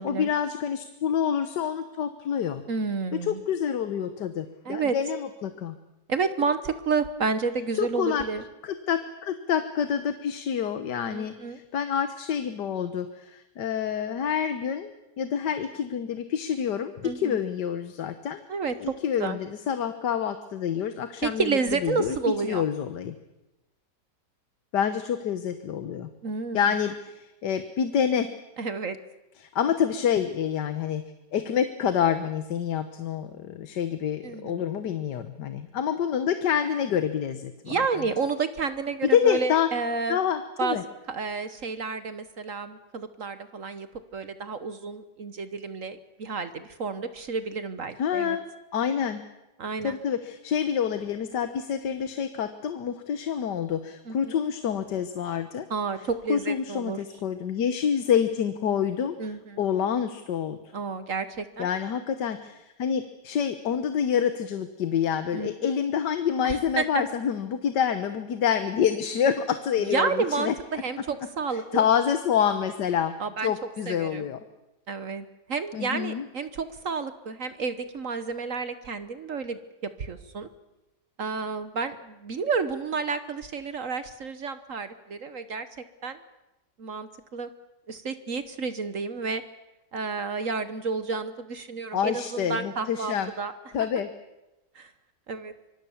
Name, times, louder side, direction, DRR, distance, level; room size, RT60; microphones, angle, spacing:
voice 1, 0.0-2.6 3.1-5.7 7.8-8.2 8.6-14.9 15.2-18.4 18.8-22.2 22.4-23.1 24.7-26.1 26.5-28.3 29.4-31.0 31.3-37.8 39.1-39.7 40.1-40.8 48.0-48.4 48.7-49.2 49.8-55.7 56.3-60.6 61.6-70.5 71.5-73.1 73.4-74.4 75.7-76.3 91.9-93.3 93.7-94.1, left 8 dB, 70° left, 10 dB, 1.7 m, -27 dB
voice 2, 2.7-3.4 4.6-5.0 6.1-8.4 11.1-11.6 17.0-17.4 18.5-19.4 21.2-22.6 26.2-26.6 28.6-29.0 34.2-34.6 37.6-40.2 40.6-40.8 41.1-43.9 44.1-48.4 49.6-49.9 54.1-54.3 55.7-57.0 59.2-59.6 60.7-61.7 65.3-65.7 66.4-67.0 69.8-71.9 73.2-73.5 73.9-74.3 74.9-80.5 81.2-85.7 86.0-86.2 86.8-87.5 87.9-89.4 89.9-93.5 94.7-94.9 95.3-95.5, right 4 dB, 50° right, 12 dB, 1.4 m, -30 dB
25.5 x 23.5 x 7.2 m, 0.97 s
omnidirectional pair, 1.9 m